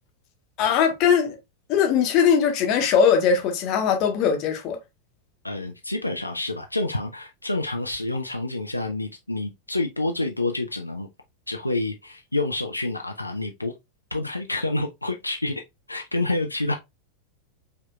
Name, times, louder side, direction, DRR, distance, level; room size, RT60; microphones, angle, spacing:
voice 1, 0.6-1.4 1.7-4.8, left 7 dB, 40° left, 1.0 m, -20 dB
voice 2, 5.4-11.1 11.5-13.7 14.1-15.6 15.9-16.7, left 2 dB, 85° left, 0.4 m, -28 dB
5.0 x 2.8 x 2.3 m
figure-of-eight pair, 90°, 0 cm